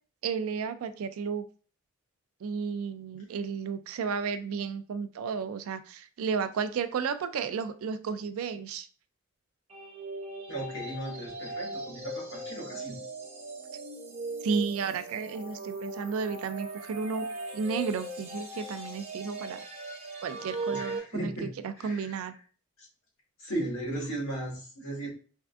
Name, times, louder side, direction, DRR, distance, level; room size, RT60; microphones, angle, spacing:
voice 1, 0.2-1.4 2.4-8.9 14.4-17.3 17.5-19.6 20.2-22.3, right 5 dB, 75° right, 11 dB, 0.3 m, -33 dB
sound 1, 9.7-21.0, right 2 dB, 30° right, 0.6 m, -39 dB
voice 2, 10.5-13.0 20.7-22.3 22.8-22.9 23.4-25.1, right 1 dB, 65° left, -3 dB, 1.4 m, -36 dB
3.5 x 2.5 x 2.3 m, 0.39 s
head